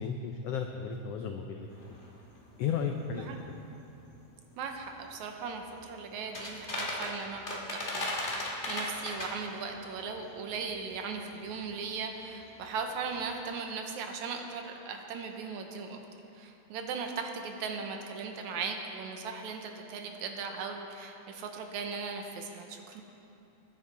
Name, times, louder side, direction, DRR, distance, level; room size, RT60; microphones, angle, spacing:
voice 1, 0.0-1.9 2.6-3.4, left 6 dB, 90° left, 4 dB, 1.3 m, -34 dB
sound 1, 1.7-13.3, left 1 dB, 30° left, 0.9 m, -40 dB
voice 2, 4.6-16.0 16.3-23.0, right 5 dB, 75° right, 4 dB, 2.2 m, -38 dB
19.5 x 9.9 x 4.3 m, 2.8 s
omnidirectional pair, 3.6 m